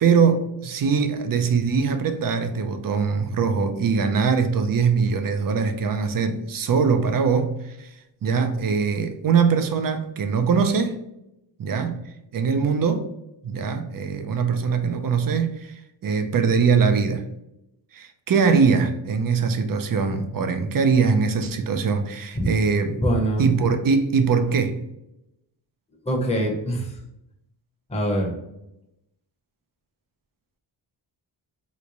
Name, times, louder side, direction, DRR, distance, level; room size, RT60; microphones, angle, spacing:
voice 1, 0.0-7.9 8.2-11.0 11.6-12.0 12.3-13.1 13.4-17.3 17.9-23.0 23.4-24.8, right 5 dB, 50° right, 0.5 m, -22 dB
voice 2, 23.0-23.5 26.0-27.0 27.9-28.3, right 1 dB, 15° left, 0.8 m, -23 dB
3.1 x 2.1 x 3.8 m
wide cardioid pair, 95°, 45 cm